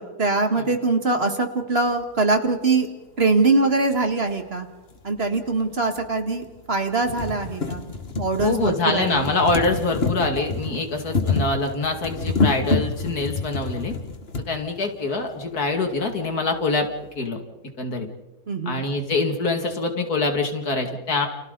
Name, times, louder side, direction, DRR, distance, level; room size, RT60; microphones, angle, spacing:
voice 1, 0.0-2.9 3.2-4.7 5.0-7.9 8.2-9.3 18.5-18.9, right 3 dB, 40° right, 5 dB, 2.0 m, -23 dB
sound 1, 4.9-5.0 6.0-6.1 6.5-6.6 6.9-14.5 15.4-15.5 15.7-15.8, left 3 dB, 40° left, 1.8 m, -27 dB
voice 2, 8.4-13.9 14.5-16.9 17.2-17.4 17.8-18.1 18.7-21.3, left 3 dB, 70° left, 4 dB, 2.9 m, -24 dB
30.0 x 29.5 x 4.0 m, 1.1 s
omnidirectional pair, 1.7 m